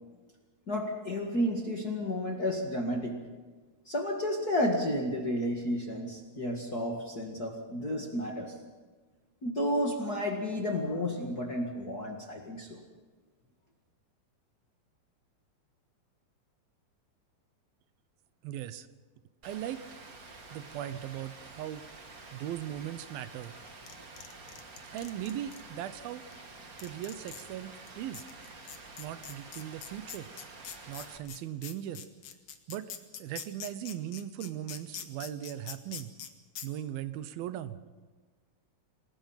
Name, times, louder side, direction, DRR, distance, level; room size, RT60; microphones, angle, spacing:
voice 1, 0.7-3.2 3.9-8.5 9.4-12.8, left 1 dB, 35° left, 1 dB, 1.7 m, -32 dB
voice 2, 18.4-18.9 19.4-19.8 20.5-21.8 22.3-23.6 24.9-26.2 26.8-28.2 29.0-30.3 30.9-32.0 32.7-32.9 33.2-36.1 36.6-37.8, right 11 dB, 80° right, 13 dB, 2.7 m, -38 dB
Rain, 19.4-31.2, right 3 dB, 35° right, 1.7 m, -49 dB
sound 1, 23.7-25.6 26.3-26.4 26.8-27.5 27.9-28.0 28.1-36.3 36.6-36.7, left 8 dB, 60° left, 2.6 m, -43 dB
28.5 x 19.0 x 5.7 m, 1.4 s
omnidirectional pair, 4.3 m